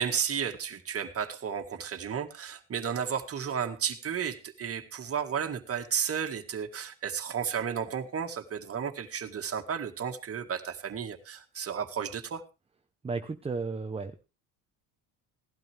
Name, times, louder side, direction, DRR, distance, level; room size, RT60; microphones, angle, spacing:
voice 1, 0.0-12.4, right 7 dB, 35° right, 6 dB, 1.9 m, -33 dB
voice 2, 13.0-14.3, right 4 dB, 15° right, 7 dB, 0.8 m, -34 dB
17.5 x 12.0 x 3.4 m, 0.29 s
cardioid pair, 115°, 38 cm